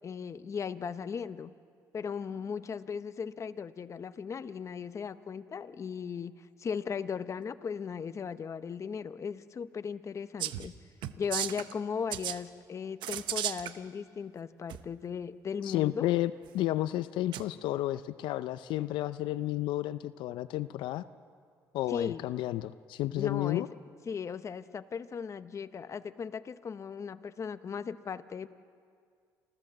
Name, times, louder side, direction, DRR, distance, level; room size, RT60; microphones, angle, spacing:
voice 1, 0.0-1.5 1.9-6.3 6.6-10.7 11.2-16.1 21.9-22.2 23.2-23.7 24.1-28.5, left 6 dB, 40° left, 12 dB, 0.8 m, -37 dB
sound 1, 10.4-10.7 11.0-11.7 12.1-12.4 13.0-13.7 14.7-14.8 17.3-17.4, right 12 dB, 80° right, 0.8 m, -34 dB
voice 2, 15.6-21.0 21.7-23.7, left 15 dB, 85° left, 14 dB, 0.5 m, -32 dB
28.0 x 14.0 x 7.7 m, 2.1 s
cardioid pair, 100°, 8 cm